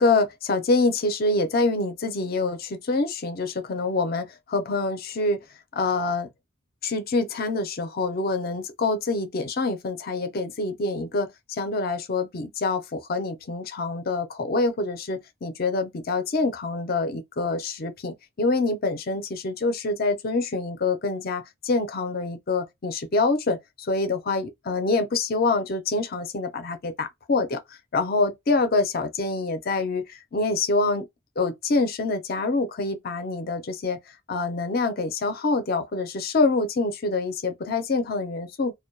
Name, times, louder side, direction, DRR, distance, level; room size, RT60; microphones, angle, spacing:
voice 1, 0.0-5.4 5.7-6.3 6.8-11.3 11.6-27.6 27.9-31.1 31.4-34.0 34.3-38.7, left 3 dB, 45° left, 0.5 m, -26 dB
2.2 x 2.2 x 2.6 m
head